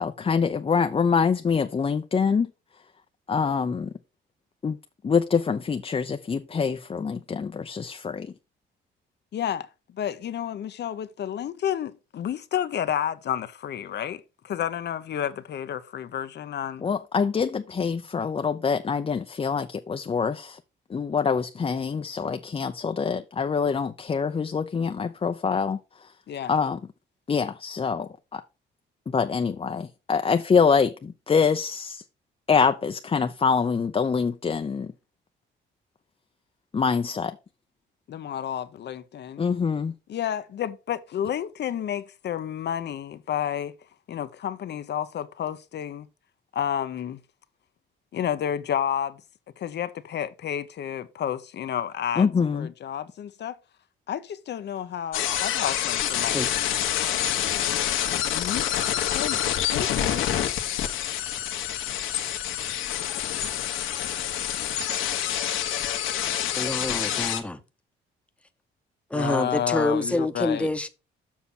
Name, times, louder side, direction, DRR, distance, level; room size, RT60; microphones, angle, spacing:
voice 1, 0.0-2.5 3.3-3.9 4.6-4.8 5.0-8.3 16.8-20.6 20.9-26.1 26.5-26.8 27.3-28.4 29.1-32.0 32.5-34.9 36.7-37.4 39.4-39.9 52.2-52.7, left 5 dB, 30° left, 0.6 m, -25 dB
voice 2, 9.3-9.7 9.9-16.8 26.3-26.5 38.1-39.4 40.1-43.7 44.1-46.1 46.5-47.2 48.1-49.2 49.6-52.3 52.5-53.6 54.1-56.4 58.3-58.7 59.1-59.4 59.7-60.3 69.1-70.7, left 9 dB, 60° left, 0.8 m, -30 dB
sound 1, 55.1-67.4, left 10 dB, 85° left, 1.4 m, -27 dB
voice 3, 66.5-67.6 69.1-70.9, left 1 dB, 5° left, 1.0 m, -27 dB
7.3 x 5.7 x 4.2 m
cardioid pair, 90°, 20 cm